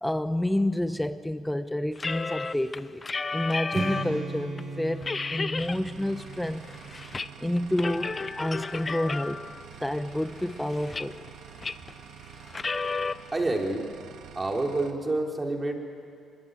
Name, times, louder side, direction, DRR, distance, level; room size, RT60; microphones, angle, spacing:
voice 1, 0.0-3.0 3.3-5.0 5.3-6.6 7.4-9.4 9.8-11.2, left 1 dB, 5° left, 11 dB, 1.0 m, -29 dB
sound 1, 2.0-4.2 4.6-4.7 5.0-5.8 6.2-7.3 7.6-9.6 10.2-11.3 11.6-11.9 12.5-13.1, left 4 dB, 30° left, 0.6 m, -32 dB
Strum, 3.7-7.8, right 3 dB, 50° right, 7.9 m, -38 dB
sound 2, 5.6-14.9, right 8 dB, 80° right, 1.8 m, -47 dB
voice 2, 13.3-13.9 14.4-15.7, right 2 dB, 20° right, 2 dB, 3.6 m, -28 dB
23.5 x 21.5 x 9.2 m, 2.3 s
cardioid pair, 90°, 0 cm